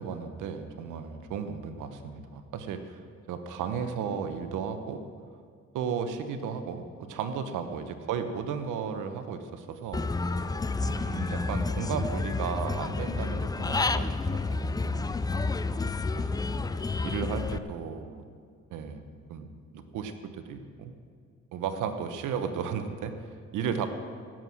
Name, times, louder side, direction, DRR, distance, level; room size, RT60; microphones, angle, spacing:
voice 1, 0.0-5.0 5.7-10.1 10.8-15.2 16.1-16.7 17.0-18.3 18.7-20.9 21.5-23.9, right 6 dB, 90° right, 8 dB, 1.1 m, -35 dB
Human voice / Bird, 9.9-17.6, left 3 dB, 15° left, 0.4 m, -30 dB
voice 2, 10.5-10.8 13.0-13.5 16.6-17.1 17.5-17.6 21.7-21.8, left 3 dB, 90° left, 2 dB, 2.0 m, -51 dB
17.0 x 7.6 x 6.2 m, 2.1 s
cardioid pair, 90°, 30 cm